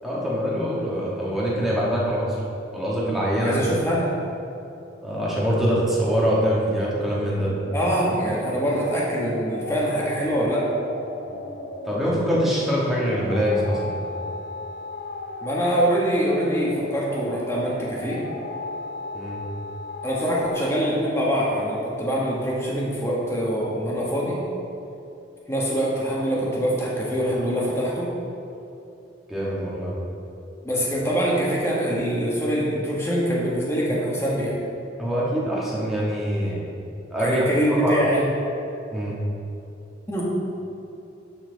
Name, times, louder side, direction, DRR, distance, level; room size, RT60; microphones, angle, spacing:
voice 1, 0.0-2.4 2.7-3.5 5.0-7.5 11.8-14.0 19.1-19.4 29.3-30.0 35.0-36.7 37.1-37.4 37.8-37.9 38.9-39.2, equal, ahead, -7 dB, 1.6 m, -24 dB
voice 2, 3.3-4.1 7.7-10.7 15.4-18.2 20.0-24.4 25.5-28.1 30.6-34.6 37.2-38.2 40.1-40.2, equal, 15° left, -5 dB, 1.5 m, -24 dB
sound 1, 7.2-22.5, left 2 dB, 55° left, 0.6 m, -36 dB
12.0 x 4.4 x 4.0 m, 2.7 s
head